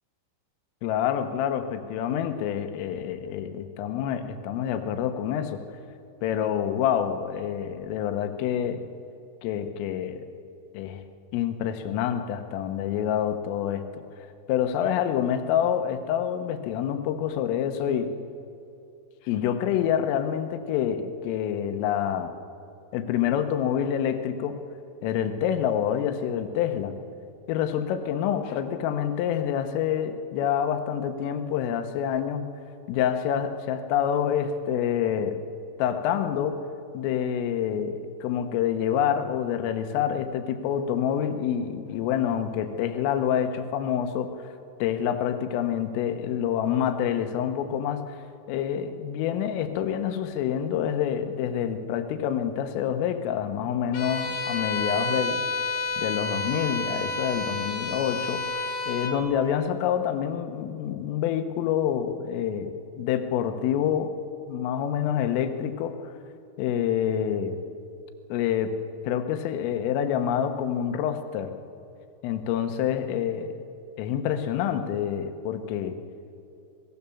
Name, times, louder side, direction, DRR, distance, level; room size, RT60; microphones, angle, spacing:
voice 1, 0.8-5.6 6.2-8.9 9.4-10.3 10.7-11.0 11.3-14.0 14.5-18.1 19.3-22.3 22.9-24.6 25.0-27.0 27.5-32.5 32.9-35.4 35.8-36.6 36.9-44.5 44.8-48.2 48.5-55.4 56.0-58.4 58.9-64.2 64.5-66.1 66.6-67.6 68.3-71.6 72.2-73.5 74.0-76.0, left 9 dB, 80° left, 8 dB, 3.7 m, -27 dB
Bowed string instrument, 53.9-59.2, left 2 dB, 60° left, 3.5 m, -30 dB
26.5 x 19.0 x 7.1 m, 2.6 s
omnidirectional pair, 6.0 m